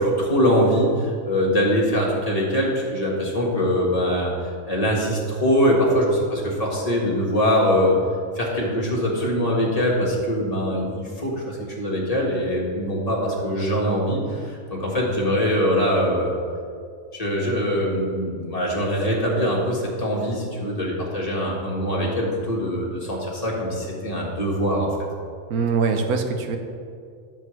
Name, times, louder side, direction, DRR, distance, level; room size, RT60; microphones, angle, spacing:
voice 1, 0.0-8.0 8.4-16.3 17.1-24.9, equal, 25° left, -3 dB, 1.8 m, -23 dB
voice 2, 25.5-26.6, right 5 dB, 80° right, 5 dB, 1.3 m, -22 dB
13.5 x 6.9 x 3.4 m, 2.3 s
omnidirectional pair, 1.6 m